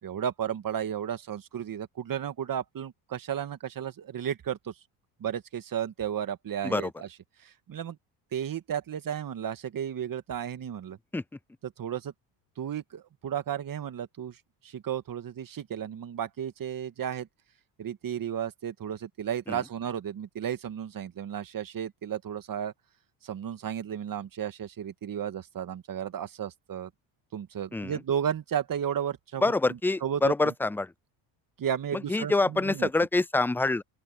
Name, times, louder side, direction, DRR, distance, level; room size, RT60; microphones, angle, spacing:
voice 1, 0.0-4.7 5.2-7.1 7.4-8.0 8.3-11.0 11.6-12.1 12.6-17.3 17.8-22.7 23.2-26.9 27.3-29.4 29.7-30.5 31.6-32.9, right 9 dB, 40° right, 2.2 m, -33 dB
voice 2, 29.4-30.9 31.9-33.8, left 2 dB, 5° left, 0.5 m, -26 dB
open air
supercardioid pair, 80°, 50 cm